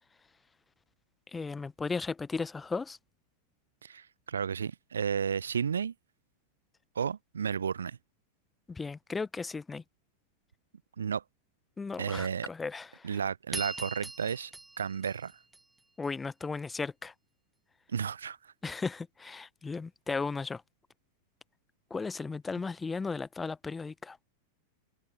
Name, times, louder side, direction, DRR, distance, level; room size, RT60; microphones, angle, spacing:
voice 1, 1.3-3.0 8.7-9.8 11.8-13.1 16.0-17.1 18.6-20.6 21.9-24.2, left 4 dB, 15° left, 1.1 m, -36 dB
voice 2, 3.8-5.9 6.9-8.0 11.0-11.2 12.0-12.5 13.0-15.4 17.9-18.5, right 7 dB, 70° right, 0.8 m, -33 dB
ding delayed, 13.5-16.1, right 2 dB, 10° right, 1.4 m, -42 dB
figure-of-eight pair, 90°, 0 cm